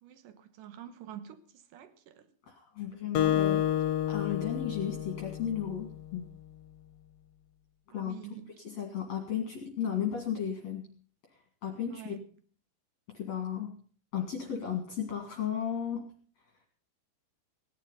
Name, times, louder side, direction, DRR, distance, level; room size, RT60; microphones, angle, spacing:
voice 1, 0.0-2.3 7.9-8.5 11.9-12.3, right 10 dB, 65° right, 2.4 m, -47 dB
voice 2, 2.5-3.6 4.1-6.3 7.9-8.1 8.6-10.9 11.6-12.1 13.1-13.7 14.1-16.1, left 8 dB, 50° left, 2.9 m, -34 dB
Acoustic guitar, 3.1-5.9, left 11 dB, 70° left, 2.5 m, -30 dB
17.5 x 11.0 x 5.6 m
omnidirectional pair, 4.6 m